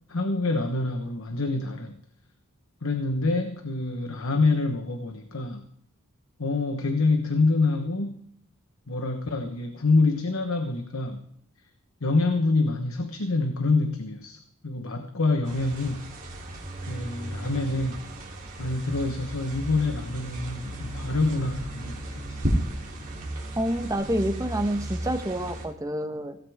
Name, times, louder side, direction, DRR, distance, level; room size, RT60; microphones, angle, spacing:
voice 1, 0.1-2.0 2.8-5.6 6.4-8.2 8.9-11.2 12.0-16.0 16.9-18.0 18.6-22.4, left 3 dB, 65° left, 7 dB, 1.1 m, -26 dB
sound 1, 15.4-25.6, right 1 dB, 35° right, 3.3 m, -34 dB
voice 2, 23.6-26.4, right 1 dB, 15° right, 6 dB, 1.1 m, -28 dB
17.0 x 15.5 x 3.6 m, 0.66 s
head